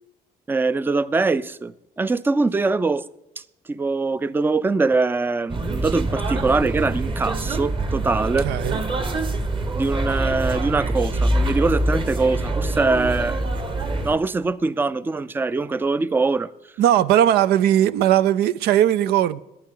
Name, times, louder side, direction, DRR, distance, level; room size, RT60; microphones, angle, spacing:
voice 1, 0.5-1.7 2.0-3.0 3.7-8.5 9.7-13.5 14.0-16.5, right 3 dB, 15° right, 0.4 m, -22 dB
sound 1, 5.5-14.2, right 2 dB, 30° right, 1.2 m, -25 dB
voice 2, 8.4-8.8 16.8-19.4, right 11 dB, 90° right, 0.5 m, -18 dB
23.0 x 9.3 x 3.8 m
cardioid pair, 115°, 16 cm